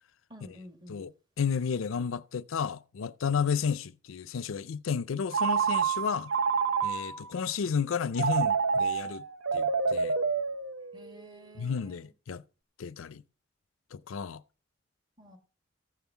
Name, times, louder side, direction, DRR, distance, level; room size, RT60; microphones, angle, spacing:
voice 1, 0.3-1.0 10.9-12.1 15.2-15.4, equal, 20° right, 1.8 m, -51 dB
voice 2, 0.9-6.3 6.8-9.2 9.5-10.2 11.5-12.4 12.8-13.2 13.9-14.4, left 6 dB, 85° left, 0.5 m, -32 dB
Telephone, 5.3-7.3 8.2-11.2, right 6 dB, 75° right, 0.9 m, -28 dB
14.5 x 5.6 x 7.1 m
head